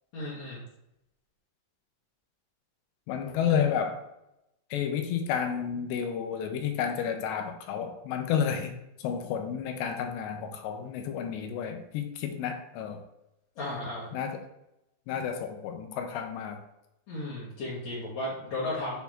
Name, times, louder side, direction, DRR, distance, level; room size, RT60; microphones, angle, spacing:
voice 1, 0.1-0.6 13.6-14.1 17.1-19.0, left 1 dB, 55° left, -8 dB, 2.0 m, -34 dB
voice 2, 3.1-4.0 4.7-13.0 14.1-14.4 15.1-16.6, left 8 dB, 80° left, 5 dB, 2.9 m, -31 dB
7.2 x 4.4 x 3.5 m, 0.85 s
omnidirectional pair, 5.0 m